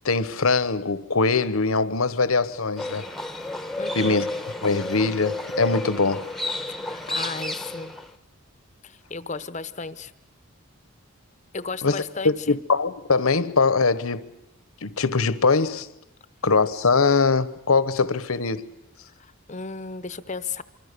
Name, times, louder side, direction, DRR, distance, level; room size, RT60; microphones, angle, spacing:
voice 1, 0.0-3.1 3.9-4.3 4.6-6.3 11.8-14.3 14.8-15.9 16.4-18.7, left 4 dB, 80° left, 1.1 m, -22 dB
Livestock farm animals working animals, 2.8-8.1, left 2 dB, ahead, 1.0 m, -31 dB
voice 2, 3.8-4.2 6.7-7.9 8.8-10.1 11.5-12.6 19.2-20.6, left 4 dB, 35° left, 0.8 m, -34 dB
25.0 x 25.0 x 6.8 m
head